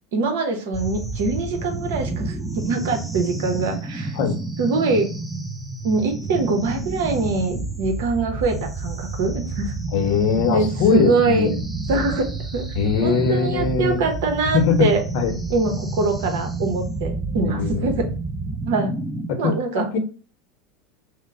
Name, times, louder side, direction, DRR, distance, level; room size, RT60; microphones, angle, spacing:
voice 1, 0.1-4.2 4.6-5.1 5.8-9.7 10.5-11.5 11.9-12.7 13.0-15.0 15.5-18.1 18.6-18.9 19.4-19.9, right 3 dB, 75° right, 5 dB, 0.9 m, -23 dB
sound 1, 0.7-19.3, right 3 dB, 5° right, 0.4 m, -30 dB
voice 2, 9.9-11.6 12.8-14.0 14.5-14.9 15.1-15.4 17.4-17.9 19.4-20.0, left 5 dB, 65° left, 6 dB, 0.8 m, -21 dB
3.0 x 2.1 x 3.7 m, 0.37 s
supercardioid pair, 120°, 0 cm